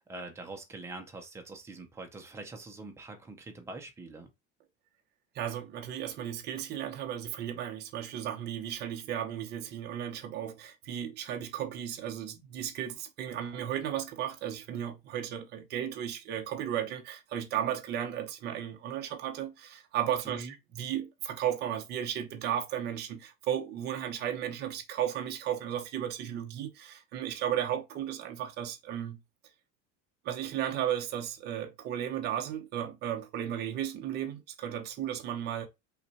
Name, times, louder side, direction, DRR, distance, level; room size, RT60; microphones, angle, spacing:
voice 1, 0.0-4.3 20.2-20.5, right 2 dB, 10° right, 0.4 m, -44 dB
voice 2, 5.3-29.2 30.2-35.7, right 10 dB, 30° right, 0.8 m, -34 dB
5.7 x 2.2 x 4.1 m
cardioid pair, 175°, 33 cm